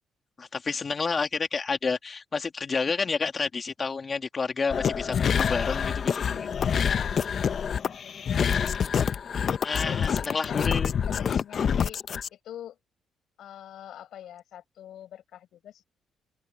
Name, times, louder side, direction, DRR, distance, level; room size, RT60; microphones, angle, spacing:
voice 1, 0.4-6.7 9.6-10.9, left 4 dB, 35° left, 2.7 m, -30 dB
sound 1, 4.7-12.3, left 7 dB, 55° left, 0.9 m, -26 dB
voice 2, 6.8-7.2 8.0-8.9 10.2-10.7 11.1-12.0 12.3-12.8 13.4-15.8, left 11 dB, 75° left, 6.5 m, -44 dB
cardioid pair, 90°, 0 cm